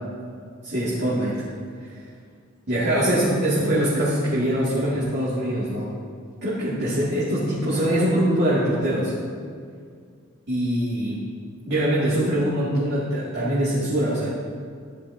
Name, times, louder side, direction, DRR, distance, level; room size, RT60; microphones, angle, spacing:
voice 1, 0.6-1.4 2.7-5.9 6.4-9.1 10.5-11.2 11.7-14.3, right 1 dB, 55° right, -9 dB, 2.4 m, -23 dB
15.0 x 10.5 x 2.8 m, 2.1 s
head